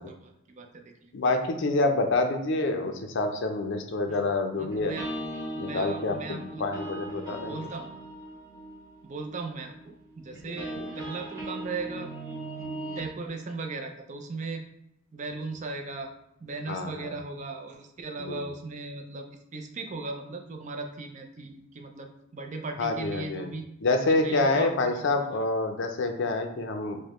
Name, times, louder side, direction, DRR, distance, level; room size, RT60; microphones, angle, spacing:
voice 1, 0.0-1.1 4.1-4.2 4.6-6.8 7.4-7.9 9.0-12.1 12.6-12.7 13.0-14.6 15.1-16.1 16.4-23.7 24.2-25.0, right 3 dB, 35° right, 4 dB, 0.4 m, -38 dB
voice 2, 1.1-4.9 5.6-7.6 10.7-10.9 16.7-17.1 18.2-18.4 22.8-23.5 23.8-27.0, left 2 dB, 60° left, 5 dB, 0.5 m, -27 dB
sound 1, 4.7-13.1, right 1 dB, 15° right, 1.0 m, -39 dB
4.8 x 2.1 x 3.0 m, 0.79 s
head